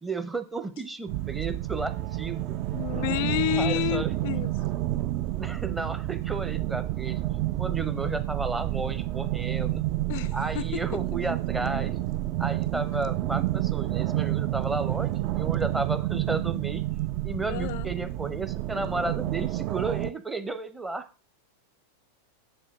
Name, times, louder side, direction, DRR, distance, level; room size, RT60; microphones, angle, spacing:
voice 1, 0.0-2.6 3.1-4.1 5.4-7.2 7.6-9.8 10.3-11.9 12.4-16.8 17.2-21.0, right 3 dB, 10° right, 0.7 m, -33 dB
sound 1, 1.1-20.1, right 15 dB, 40° right, 0.5 m, -29 dB
voice 2, 2.7-4.5 10.1-10.8 17.5-17.9, left 14 dB, 50° left, 0.4 m, -30 dB
7.1 x 7.0 x 3.2 m
figure-of-eight pair, 90°, 0 cm